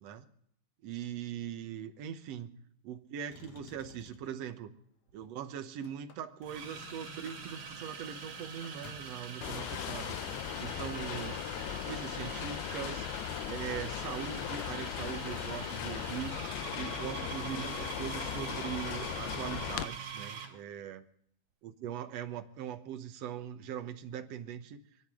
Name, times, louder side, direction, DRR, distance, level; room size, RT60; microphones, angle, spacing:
voice 1, 0.8-2.5 2.8-4.7 5.1-11.4 11.9-13.1 13.5-16.4 16.7-21.0 21.6-24.8, right 9 dB, 70° right, 7 dB, 1.5 m, -41 dB
Motor vehicle (road), 3.3-4.4 5.2-6.8 7.1-7.4 7.7-7.8 8.1-9.3 10.3-10.4, left 6 dB, 60° left, 1.9 m, -55 dB
sound 1, 5.1-5.3 6.4-20.6, right 5 dB, 55° right, 3.7 m, -44 dB
sound 2, 9.4-19.9, left 13 dB, 90° left, 2.6 m, -38 dB
27.0 x 10.5 x 3.7 m, 0.74 s
omnidirectional pair, 4.3 m